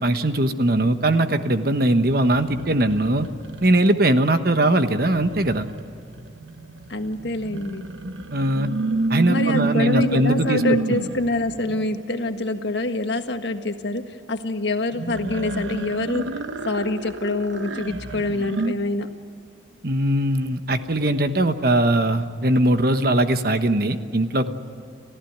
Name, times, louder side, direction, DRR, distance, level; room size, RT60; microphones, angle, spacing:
voice 1, 0.0-3.3 3.6-5.7 8.3-8.7 9.1-10.8 19.8-24.5, right 1 dB, 55° right, 8 dB, 1.2 m, -20 dB
sound 1, 2.0-4.0 5.0-11.9 14.9-18.7, right 2 dB, 85° right, 1.1 m, -29 dB
voice 2, 6.9-7.9 9.3-16.3 16.6-19.1, left 2 dB, 70° left, 6 dB, 1.6 m, -26 dB
30.0 x 15.0 x 9.4 m, 2.6 s
head